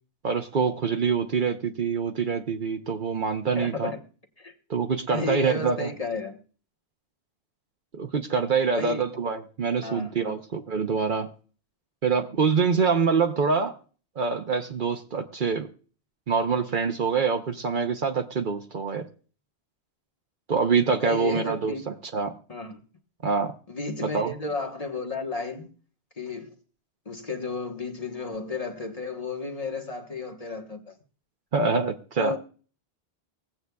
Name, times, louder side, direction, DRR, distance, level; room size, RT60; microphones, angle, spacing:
voice 1, 0.2-3.9 4.7-5.9 7.9-11.3 12.0-13.8 14.2-15.7 16.3-19.1 20.5-22.3 23.2-23.5 24.0-24.3 31.5-32.3, right 5 dB, 55° right, 0.9 m, -25 dB
voice 2, 3.5-4.0 4.4-4.5 5.1-6.4 8.7-9.1 9.8-10.4 21.0-21.8 22.5-22.8 23.7-25.7 26.2-26.5 27.0-31.0 32.2-32.4, left 3 dB, 35° left, 1.3 m, -32 dB
23.5 x 7.9 x 2.3 m
omnidirectional pair, 1.1 m